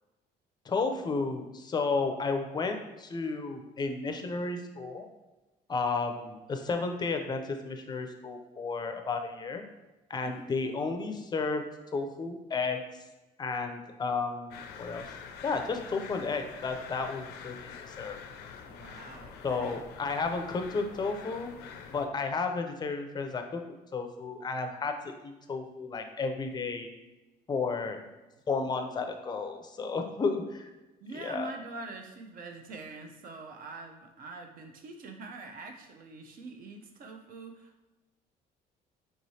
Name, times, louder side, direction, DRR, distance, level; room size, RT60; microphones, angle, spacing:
voice 1, 0.7-5.1 5.7-9.6 10.1-11.6 11.9-12.8 13.4-15.1 15.4-18.2 19.4-21.5 21.9-23.6 23.9-26.9 27.5-28.0 28.5-30.7 31.1-31.5, left 4 dB, 25° left, 6 dB, 0.5 m, -32 dB
voice 2, 10.2-10.6 18.6-19.8 21.9-22.2 31.0-37.8, right 3 dB, 55° right, 4 dB, 0.6 m, -44 dB
sound 1, 14.5-22.1, left 6 dB, 80° left, 0.4 m, -46 dB
4.6 x 3.1 x 2.7 m, 1.1 s
cardioid pair, 110°, 17 cm